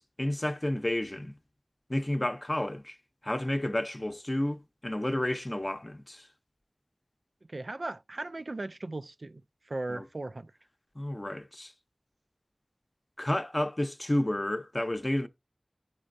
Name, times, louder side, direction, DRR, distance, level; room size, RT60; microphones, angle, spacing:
voice 1, 0.0-1.4 1.9-3.0 3.2-6.3 9.9-10.0 11.0-11.7 13.2-15.3, left 1 dB, 30° left, 0.6 m, -31 dB
voice 2, 7.5-10.5, right 2 dB, 70° right, 0.3 m, -37 dB
11.0 x 4.3 x 2.6 m
wide cardioid pair, 45°, 0 cm